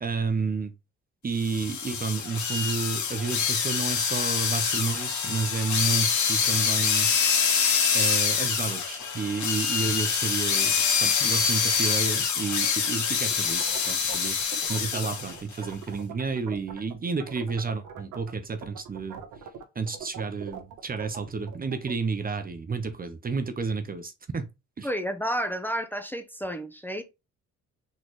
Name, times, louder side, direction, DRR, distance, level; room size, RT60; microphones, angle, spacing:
voice 1, 0.0-0.7 1.2-7.1 7.9-10.7 11.0-19.2 19.7-24.5 24.8-24.9, right 4 dB, 30° right, 0.7 m, -31 dB
sound 1, 1.4-15.3, left 6 dB, 70° left, 1.6 m, -25 dB
sound 2, 13.3-16.9 17.2-18.3 18.6-22.0, right 8 dB, 85° right, 1.1 m, -41 dB
voice 2, 24.8-27.0, equal, 5° left, 0.7 m, -31 dB
4.1 x 3.9 x 3.1 m
cardioid pair, 90°, 30 cm